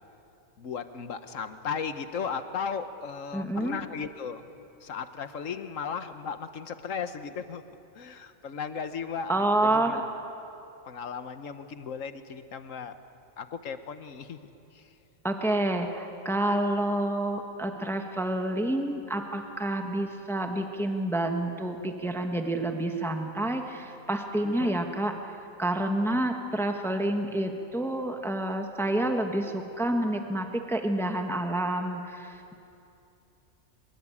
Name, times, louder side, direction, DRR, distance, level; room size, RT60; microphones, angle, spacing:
voice 1, 0.6-4.5 4.8-7.6 7.9-10.1 10.9-12.9 13.4-14.9 24.4-24.8, left 6 dB, 70° left, 10 dB, 1.5 m, -36 dB
voice 2, 3.3-3.8 9.3-10.0 15.2-25.1 25.6-32.5, right 1 dB, ahead, 4 dB, 1.4 m, -28 dB
23.0 x 22.0 x 8.6 m, 2.7 s
omnidirectional pair, 1.4 m